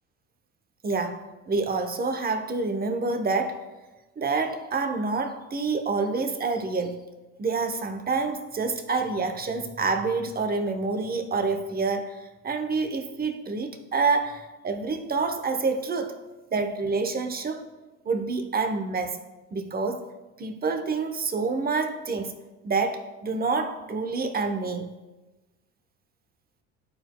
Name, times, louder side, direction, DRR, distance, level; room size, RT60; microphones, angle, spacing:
voice 1, 0.8-3.6 4.2-7.0 7.4-16.1 16.5-17.7 18.0-19.2 19.5-20.1 20.4-22.4 22.6-24.9, right 4 dB, 25° right, 0.8 m, -27 dB
12.0 x 4.5 x 2.2 m
hypercardioid pair, 70°, 35 cm